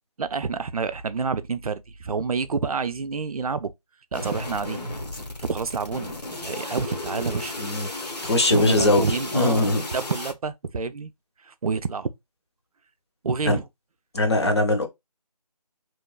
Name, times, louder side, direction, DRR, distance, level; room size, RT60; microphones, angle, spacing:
voice 1, 0.2-3.7 4.1-4.8 5.4-6.1 6.4-7.6 8.2-11.1 11.4-12.1 13.2-13.6, right 5 dB, 65° right, 0.4 m, -28 dB
sound 1, 4.1-10.3, left 2 dB, 80° left, 1.0 m, -34 dB
voice 2, 8.2-9.0 9.3-9.8 13.5-13.6 14.1-14.9, left 2 dB, 40° left, 0.7 m, -21 dB
3.0 x 2.2 x 2.2 m
figure-of-eight pair, 165°, 20 cm